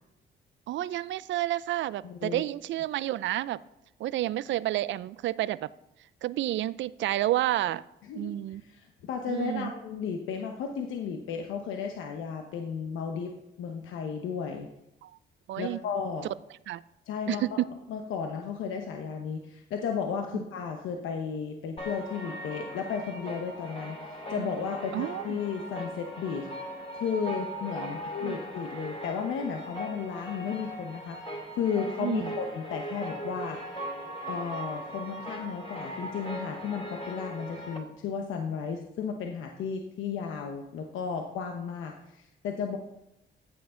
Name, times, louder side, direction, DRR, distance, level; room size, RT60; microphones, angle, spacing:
voice 1, 0.7-3.6 4.0-5.7 6.2-7.8 8.1-8.6 9.3-9.7 15.0-15.1 15.5-15.8 16.7-16.8 17.3-17.7 20.3-20.4 24.4-24.6 24.9-25.4 27.8-28.4 32.0-32.3, right 14 dB, 70° right, 18 dB, 0.4 m, -30 dB
voice 2, 2.0-2.4 8.1-14.7 15.6-16.3 17.1-17.6 17.9-26.5 26.9-31.2 31.6-33.6 34.3-42.8, left 6 dB, 85° left, 3 dB, 1.0 m, -34 dB
sound 1, 21.8-37.8, equal, 30° left, 2.4 m, -39 dB
14.5 x 7.1 x 3.8 m, 0.87 s
cardioid pair, 90°, 20 cm